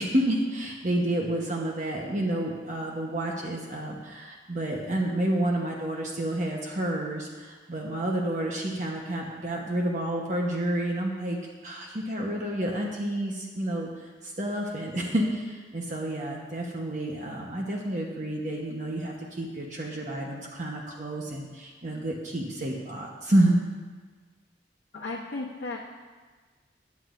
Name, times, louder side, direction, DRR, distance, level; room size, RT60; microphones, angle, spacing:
voice 1, 0.0-11.4 11.6-23.6, right 1 dB, 40° right, -1 dB, 1.0 m, -29 dB
voice 2, 24.9-25.8, left 3 dB, 80° left, -4 dB, 1.0 m, -34 dB
16.0 x 9.5 x 2.6 m, 1.4 s
head